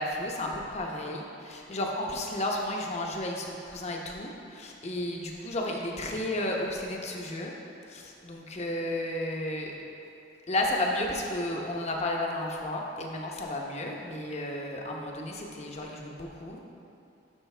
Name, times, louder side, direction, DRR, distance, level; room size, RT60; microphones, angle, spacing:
voice 1, 0.0-7.5 7.9-9.7 10.5-16.7, left 1 dB, 35° left, 0 dB, 0.9 m, -33 dB
12.0 x 5.3 x 3.3 m, 2.7 s
head